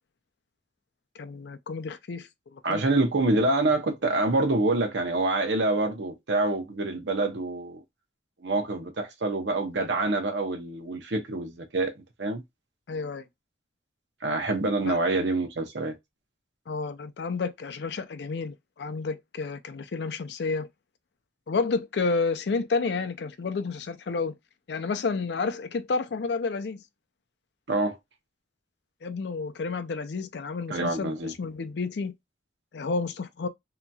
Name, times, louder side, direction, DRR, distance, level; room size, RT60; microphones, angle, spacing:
voice 1, 1.2-2.8 12.9-13.2 14.8-15.0 16.7-20.7 21.5-24.3 24.7-26.8 29.0-32.1 32.7-33.5, left 4 dB, 70° left, 0.4 m, -30 dB
voice 2, 2.6-7.8 8.4-12.4 14.2-15.9 27.7-28.0 30.7-31.3, right 2 dB, 85° right, 0.8 m, -26 dB
2.8 x 2.3 x 2.6 m
head